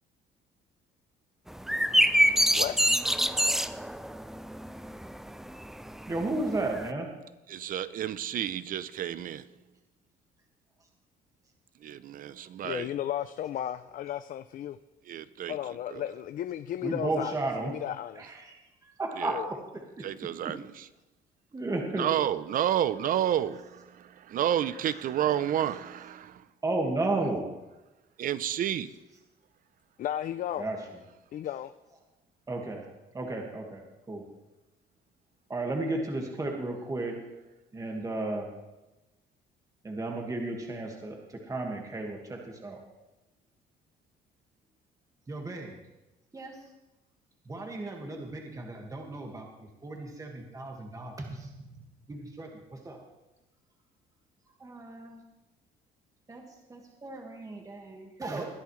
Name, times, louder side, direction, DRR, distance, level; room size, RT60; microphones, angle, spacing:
sound 1, 1.5-6.9, equal, ahead, 0.5 m, -26 dB
voice 1, 6.1-7.1 16.8-17.7 18.2-18.6 19.0-19.8 21.5-22.1 26.6-27.4 30.6-30.8 32.5-32.8 33.1-34.2 35.5-37.1 37.7-38.5 39.8-42.8 45.3-45.7 46.3-46.5 47.5-51.8 52.1-53.0 54.6-55.2 56.3-56.4 56.7-58.5, right 2 dB, 20° right, 1.9 m, -34 dB
voice 2, 7.5-9.4 11.8-12.9 15.1-15.6 15.9-16.0 19.2-19.4 20.0-20.9 21.9-26.4 28.2-28.9, right 10 dB, 55° right, 0.7 m, -30 dB
voice 3, 12.6-14.8 15.5-18.3 19.2-19.5 30.0-30.7 31.3-31.7, left 11 dB, 55° left, 0.5 m, -34 dB
21.0 x 10.5 x 3.2 m
cardioid pair, 110°, 17 cm